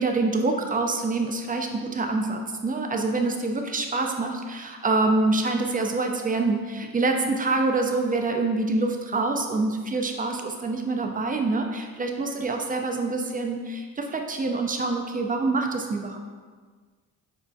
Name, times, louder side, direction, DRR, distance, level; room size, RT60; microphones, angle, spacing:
voice 1, 0.0-16.2, right 3 dB, 25° right, 3 dB, 0.4 m, -26 dB
4.5 x 2.2 x 2.5 m, 1.5 s
cardioid pair, 65°, 37 cm